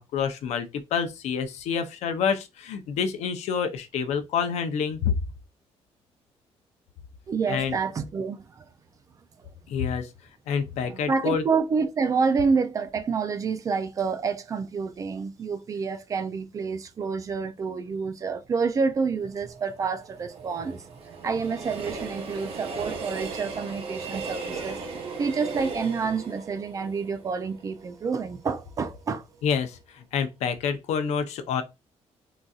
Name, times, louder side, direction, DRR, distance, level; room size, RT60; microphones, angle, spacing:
voice 1, 0.0-5.2 7.5-7.8 9.7-10.1 10.5-11.4 29.4-31.6, left 7 dB, 75° left, 0.6 m, -28 dB
voice 2, 7.3-8.6 9.4-9.5 10.9-20.8 21.2-24.8 25.2-29.3, right 5 dB, 30° right, 0.3 m, -28 dB
Train, 19.3-28.3 28.7-28.8, right 4 dB, 55° right, 0.8 m, -37 dB
3.9 x 2.6 x 2.3 m
cardioid pair, 165°, 11 cm